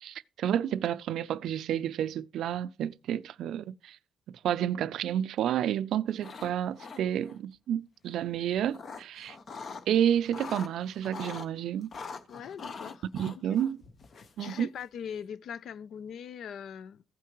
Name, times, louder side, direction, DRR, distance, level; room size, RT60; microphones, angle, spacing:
voice 1, 0.0-4.0 4.4-9.4 9.9-11.9 13.1-13.8 14.4-14.7, right 10 dB, 75° right, 0.4 m, -30 dB
sound 1, 6.1-6.5 6.8-7.4 8.3-9.8 10.2-11.5 11.9-14.8, left 4 dB, 50° left, 1.0 m, -43 dB
voice 2, 12.3-13.0 13.3-13.6 14.2-17.0, left 8 dB, 70° left, 0.4 m, -41 dB
15.5 x 5.7 x 3.0 m
cardioid pair, 90°, 0 cm